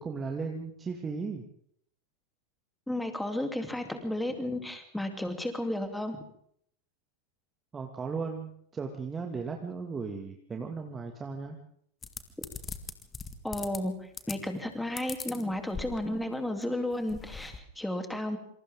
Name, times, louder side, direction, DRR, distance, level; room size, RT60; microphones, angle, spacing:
voice 1, 0.0-1.4 7.7-11.6, right 4 dB, 15° right, 3 dB, 2.2 m, -36 dB
voice 2, 2.9-6.2 13.4-18.4, left 1 dB, 5° left, 5 dB, 3.3 m, -33 dB
sound 1, 12.0-13.8 14.1-14.6 15.0-16.2 16.6-16.7 16.9-17.6, left 5 dB, 20° left, 2.0 m, -40 dB
27.5 x 26.5 x 3.8 m, 0.67 s
figure-of-eight pair, 90°, 0 cm